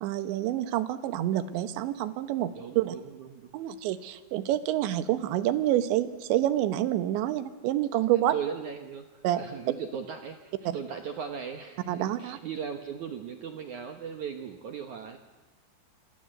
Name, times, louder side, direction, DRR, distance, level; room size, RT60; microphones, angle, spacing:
voice 1, 0.0-3.0 3.5-8.3 9.2-9.4 11.9-12.4, right 13 dB, 90° right, 12 dB, 3.5 m, -28 dB
voice 2, 2.5-3.5 8.3-15.2, right 7 dB, 65° right, 6 dB, 2.0 m, -38 dB
27.0 x 26.5 x 7.9 m, 1.2 s
omnidirectional pair, 5.1 m